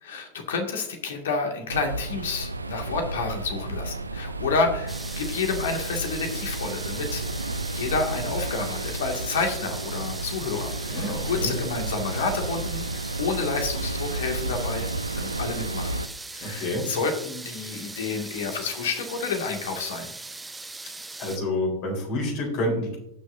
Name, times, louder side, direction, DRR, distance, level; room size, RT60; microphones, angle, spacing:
voice 1, 0.0-7.2 7.7-14.9 15.1-16.0 16.3-20.1, left 4 dB, 60° left, 3 dB, 2.1 m, -29 dB
sound 1, 1.7-16.1, right 2 dB, 80° right, 0.5 m, -32 dB
sound 2, 4.9-21.4, right 3 dB, 10° right, 0.7 m, -39 dB
voice 2, 10.9-11.5 16.4-16.9 21.2-23.0, left 1 dB, 45° left, 0 dB, 4.0 m, -28 dB
18.5 x 6.3 x 2.7 m, 0.80 s
figure-of-eight pair, 90°, 0 cm